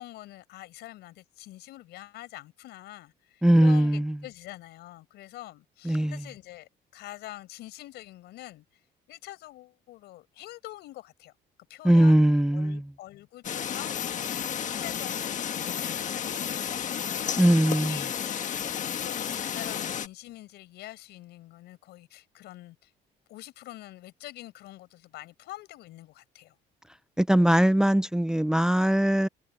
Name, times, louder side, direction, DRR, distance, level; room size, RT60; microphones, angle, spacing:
voice 1, 0.0-8.7 9.1-11.3 11.7-12.2 12.5-17.6 17.9-18.5 18.8-22.9 23.3-26.5, left 16 dB, 80° left, 5.5 m, -45 dB
voice 2, 3.4-4.2 5.8-6.2 11.8-12.8 17.4-18.0 27.2-29.3, right 1 dB, 5° right, 0.6 m, -21 dB
sound 1, 13.4-20.1, left 8 dB, 50° left, 1.5 m, -32 dB
cardioid pair, 110°, 17 cm